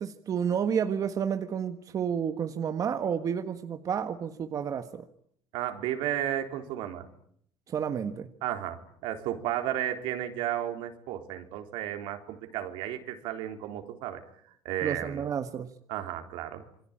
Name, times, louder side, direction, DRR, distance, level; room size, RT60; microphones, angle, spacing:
voice 1, 0.0-5.0 7.7-8.3 14.8-15.7, right 7 dB, 45° right, 7 dB, 1.6 m, -30 dB
voice 2, 5.5-7.1 8.4-14.2 14.7-15.2 15.9-16.7, right 11 dB, 80° right, 5 dB, 3.8 m, -33 dB
27.5 x 22.5 x 8.9 m, 0.68 s
cardioid pair, 115°, 8 cm